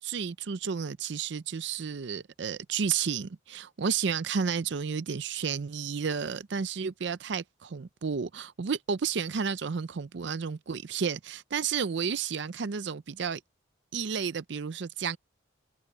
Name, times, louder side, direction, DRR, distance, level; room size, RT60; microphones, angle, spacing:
voice 1, 0.0-13.4 13.9-15.2, right 6 dB, 65° right, 0.5 m, -32 dB
head